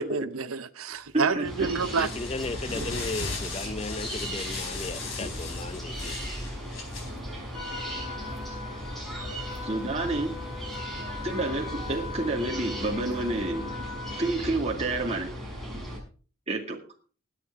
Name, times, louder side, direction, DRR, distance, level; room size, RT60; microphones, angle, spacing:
voice 1, 0.0-2.1, right 5 dB, 80° right, 0.8 m, -28 dB
sound 1, 1.0-13.5, left 4 dB, 70° left, 4.2 m, -41 dB
voice 2, 1.1-1.7 3.6-3.7 8.5-8.6 9.6-10.3 11.2-13.6 14.2-15.3 16.5-16.8, right 2 dB, 30° right, 2.0 m, -29 dB
sound 2, 1.4-16.0, equal, ahead, 6.0 m, -37 dB
voice 3, 2.0-6.2, left 3 dB, 30° left, 0.5 m, -35 dB
Trumpet, 7.5-14.4, left 5 dB, 85° left, 6.4 m, -41 dB
22.0 x 8.9 x 3.6 m
head